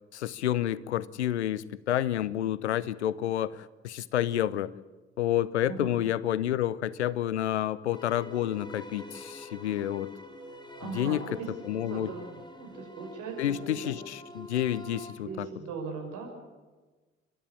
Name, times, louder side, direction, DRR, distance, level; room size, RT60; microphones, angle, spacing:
voice 1, 0.1-4.7 5.2-10.1 10.8-12.1 13.4-15.5, left 12 dB, 90° left, 21 dB, 0.6 m, -29 dB
sound 1, 7.9-15.1, left 1 dB, 15° left, 3.7 m, -46 dB
voice 2, 10.8-11.5 11.9-14.0 15.2-16.3, right 5 dB, 65° right, 2 dB, 6.1 m, -39 dB
29.5 x 12.5 x 8.7 m, 1.3 s
hypercardioid pair, 50°, 33 cm